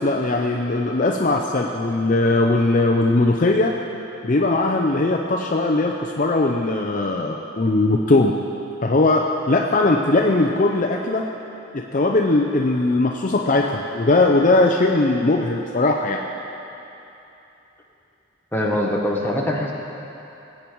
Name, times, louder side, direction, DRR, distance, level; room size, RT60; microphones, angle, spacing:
voice 1, 0.0-3.7 4.2-8.3 8.8-11.3 11.7-16.2, left 2 dB, 35° left, 1 dB, 0.6 m, -19 dB
voice 2, 18.5-19.7, left 1 dB, 10° left, -2 dB, 1.3 m, -22 dB
20.0 x 8.6 x 4.6 m, 2.9 s
head